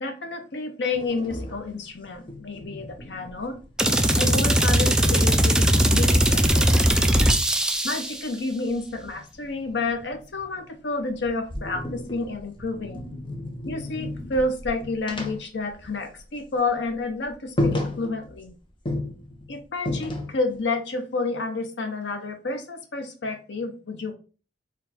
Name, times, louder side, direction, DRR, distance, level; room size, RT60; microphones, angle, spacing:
voice 1, 0.0-3.6 4.1-7.2 7.8-13.1 13.7-18.6 19.5-24.1, left 3 dB, 75° left, 7 dB, 0.8 m, -30 dB
sound 1, 0.9-4.1 4.4-7.3 8.7-10.7 11.1-16.4 16.7-16.9 17.2-17.3 17.6-18.5 18.9-20.6, left 1 dB, 30° left, 0.8 m, -34 dB
sound 2, 3.8-8.2, right 1 dB, 5° right, 0.4 m, -20 dB
4.5 x 2.4 x 4.0 m, 0.36 s
head